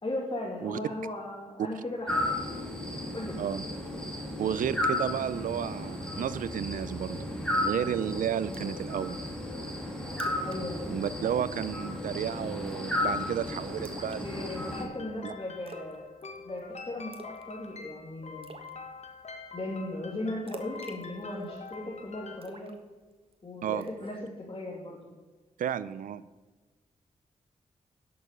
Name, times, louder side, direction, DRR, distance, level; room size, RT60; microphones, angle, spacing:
voice 1, 0.0-2.2 3.1-3.4 10.4-10.8 14.2-16.0 16.4-18.5 19.5-22.7 23.4-25.0, left 1 dB, 40° left, -4 dB, 2.8 m, -37 dB
sound 1, 2.1-14.8, left 1 dB, 5° left, 3.2 m, -34 dB
voice 2, 4.4-7.3 7.6-9.2 10.9-14.3 15.2-15.3 23.6-23.9 25.6-26.2, right 9 dB, 85° right, 16 dB, 0.5 m, -32 dB
Splash splatter, 8.5-8.9 9.3-9.4 9.8-9.9 10.1-10.6 10.8-11.1 11.4-11.7 12.7-13.0 13.8-14.7 15.7-16.0 16.2-16.6 17.1-17.5 17.8-17.9 18.4-18.7 20.5-21.7 22.4-23.3 23.8-24.1, right 3 dB, 45° right, 1.5 m, -48 dB
sound 2, 14.4-22.4, left 4 dB, 55° left, 1.8 m, -46 dB
11.0 x 6.8 x 6.7 m, 1.3 s
cardioid pair, 50°, 13 cm